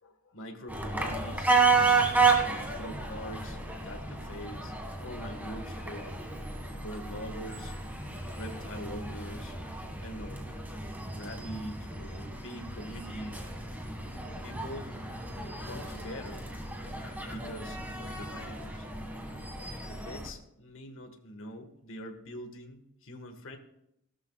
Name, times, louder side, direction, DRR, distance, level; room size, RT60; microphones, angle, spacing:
voice 1, 0.0-1.5 2.4-4.7 5.0-6.2 6.8-7.8 8.4-9.6 10.0-10.4 11.1-13.4 14.4-14.9 15.6-16.5 17.3-18.9 19.9-23.6, equal, 65° left, 5 dB, 1.8 m, -43 dB
sound 1, 0.7-20.3, right 4 dB, 10° right, 2.0 m, -32 dB
17.0 x 13.0 x 2.5 m, 0.79 s
head